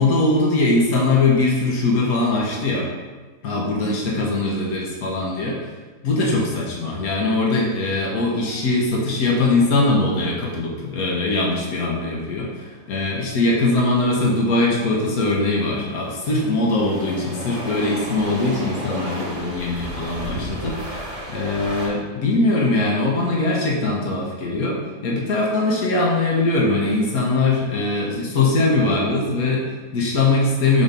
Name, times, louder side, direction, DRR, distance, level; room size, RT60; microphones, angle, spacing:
voice 1, 0.0-2.9 3.4-5.6 6.0-30.8, left 2 dB, 85° left, -3 dB, 1.6 m, -21 dB
sound 1, 8.5-21.9, equal, 25° right, 1.4 m, -34 dB
5.8 x 4.3 x 5.2 m, 1.3 s
omnidirectional pair, 1.5 m